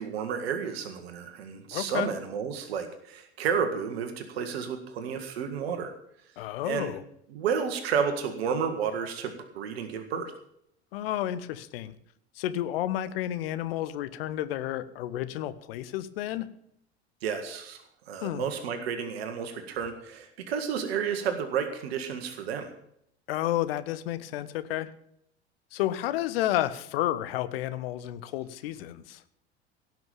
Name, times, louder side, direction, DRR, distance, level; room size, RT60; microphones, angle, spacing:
voice 1, 0.0-5.9 6.6-6.9 7.3-10.3 17.2-17.8 18.1-22.7, right 7 dB, 60° right, 7 dB, 1.8 m, -31 dB
voice 2, 1.7-2.1 6.4-7.0 10.9-12.0 12.3-16.5 18.2-18.5 23.3-24.9 25.7-29.2, left 13 dB, 60° left, 14 dB, 1.0 m, -31 dB
17.5 x 6.2 x 8.6 m, 0.72 s
figure-of-eight pair, 75°, 34 cm